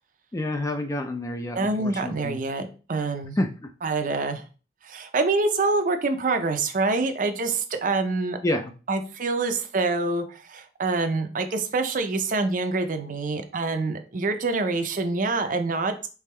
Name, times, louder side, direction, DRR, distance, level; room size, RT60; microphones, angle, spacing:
voice 1, 0.3-2.4 3.4-3.7 8.4-8.7, left 1 dB, 15° left, 6 dB, 0.3 m, -28 dB
voice 2, 1.5-3.4 3.8-4.4 4.8-8.4 8.9-16.1, right 3 dB, 45° right, 7 dB, 0.5 m, -26 dB
3.5 x 3.3 x 3.2 m, 0.35 s
head